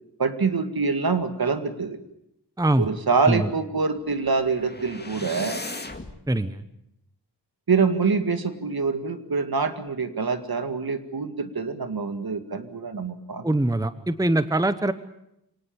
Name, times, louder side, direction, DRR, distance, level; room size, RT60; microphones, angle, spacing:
voice 1, 0.2-2.0 2.8-5.6 7.7-13.4, right 4 dB, 55° right, 9 dB, 2.2 m, -25 dB
voice 2, 2.6-2.9 3.3-3.5 6.3-6.6 13.4-14.9, right 1 dB, 10° right, 12 dB, 1.0 m, -23 dB
sound 1, 4.0-6.2, left 2 dB, 25° left, 2.2 m, -37 dB
25.5 x 18.5 x 8.8 m, 0.79 s
wide cardioid pair, 105°, 42 cm